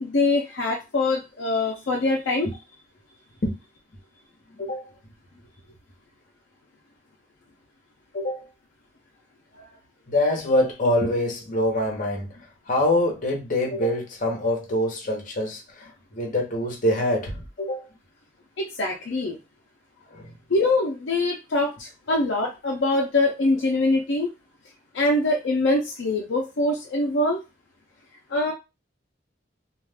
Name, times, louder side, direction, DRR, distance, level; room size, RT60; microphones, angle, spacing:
voice 1, 0.0-2.5 18.6-19.4 20.5-24.3 24.9-27.4 28.3-28.5, left 2 dB, 75° left, 0.5 m, -23 dB
voice 2, 8.1-8.5 10.1-12.3 12.7-17.8 20.1-20.3, left 1 dB, 50° left, 0.9 m, -25 dB
2.3 x 2.3 x 3.4 m
head